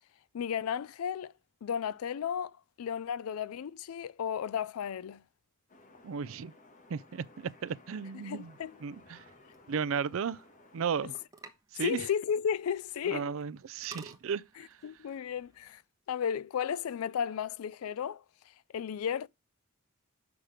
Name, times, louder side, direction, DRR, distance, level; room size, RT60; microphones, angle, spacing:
voice 1, 0.3-1.3 1.6-2.5 2.8-5.2 8.2-8.8 11.8-13.3 14.8-15.8 16.1-18.2 18.7-19.3, left 8 dB, 85° left, 0.4 m, -33 dB
sound 1, 5.7-11.3, left 2 dB, 35° left, 1.3 m, -58 dB
voice 2, 6.0-6.5 6.9-8.5 8.8-9.2 9.7-10.4 10.7-11.1 11.7-12.1 13.1-14.4, right 6 dB, 65° right, 0.4 m, -34 dB
sound 2, 9.4-15.8, right 3 dB, 15° right, 1.1 m, -56 dB
6.5 x 5.9 x 4.9 m
head